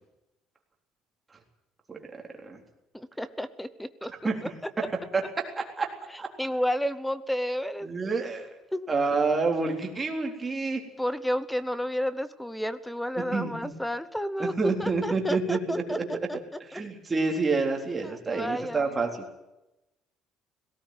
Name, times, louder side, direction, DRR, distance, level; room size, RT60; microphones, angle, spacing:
voice 1, 2.9-4.1 6.1-7.9 8.7-8.9 11.0-16.4 16.7-16.8 18.0-19.0, equal, 5° left, 15 dB, 0.8 m, -31 dB
voice 2, 7.8-8.5 8.9-10.8 13.3-13.7 14.4-16.0 16.7-19.1, right 4 dB, 15° right, 2 dB, 3.7 m, -28 dB
18.0 x 17.5 x 9.4 m, 0.94 s
cardioid pair, 155°, 0 cm